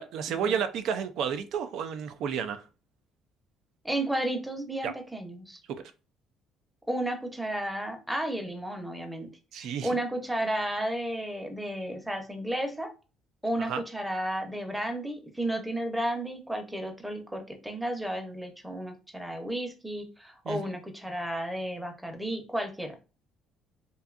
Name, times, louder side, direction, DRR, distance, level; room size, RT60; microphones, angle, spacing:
voice 1, 0.0-2.6 4.8-4.9 5.7-5.8 9.5-9.9 13.6-13.8 20.5-20.6, right 7 dB, 70° right, 0.3 m, -31 dB
voice 2, 3.8-5.6 6.9-9.3 9.5-12.9 13.4-23.0, right 1 dB, 5° right, 0.7 m, -33 dB
2.6 x 2.2 x 2.4 m
supercardioid pair, 85°, 0 cm